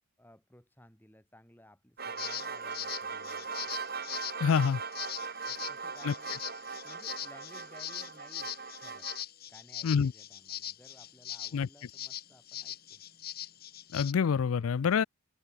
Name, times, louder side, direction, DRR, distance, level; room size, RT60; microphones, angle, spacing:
voice 1, 0.2-3.5 5.5-6.4 6.8-8.5 8.8-9.1 9.5-13.0, left 1 dB, 10° left, 7.0 m, -58 dB
sound 1, 2.0-9.2, right 5 dB, 45° right, 3.7 m, -40 dB
sound 2, 2.2-14.1, left 12 dB, 45° left, 5.7 m, -42 dB
voice 2, 4.4-4.8 6.1-6.2 9.8-10.1 11.5-11.7 13.9-15.0, left 6 dB, 75° left, 0.4 m, -26 dB
head